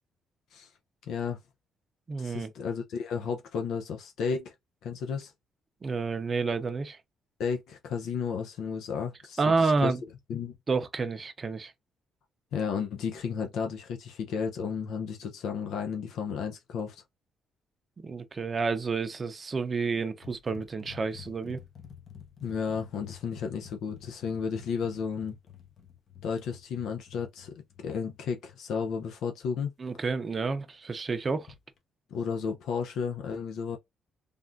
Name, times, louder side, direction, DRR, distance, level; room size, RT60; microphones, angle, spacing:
voice 1, 1.1-1.4 2.2-4.5 4.8-5.3 7.4-9.9 10.3-10.5 12.5-17.0 22.4-25.4 26.2-27.5 27.8-29.7 32.1-33.8, left 6 dB, 80° left, 0.5 m, -33 dB
voice 2, 2.1-2.5 5.8-7.0 9.4-10.0 10.7-11.7 18.0-21.6 29.8-31.5, right 4 dB, 35° right, 0.5 m, -29 dB
sound 1, 20.2-29.0 31.4-31.8, left 9 dB, 55° left, 0.8 m, -50 dB
3.4 x 2.3 x 2.5 m
cardioid pair, 90°, 0 cm